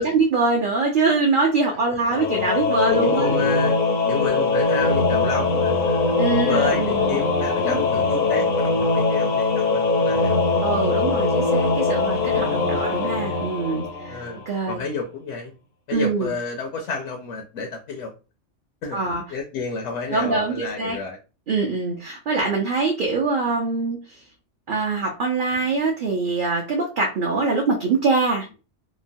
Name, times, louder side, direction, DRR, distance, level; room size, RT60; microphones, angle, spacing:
voice 1, 0.0-3.3 6.2-7.2 7.6-7.8 10.6-14.2 14.5-14.8 15.9-16.3 18.9-19.2 20.1-21.0 21.5-24.2 24.7-28.6, right 3 dB, 55° right, -1 dB, 0.6 m, -23 dB
Singing / Musical instrument, 2.1-14.6, left 3 dB, 55° left, 0.6 m, -21 dB
voice 2, 2.9-10.4 14.1-14.4 14.7-15.5 15.9-18.1 18.8-21.2, left 4 dB, 80° left, 2 dB, 0.9 m, -30 dB
3.0 x 2.1 x 2.6 m, 0.32 s
omnidirectional pair, 1.2 m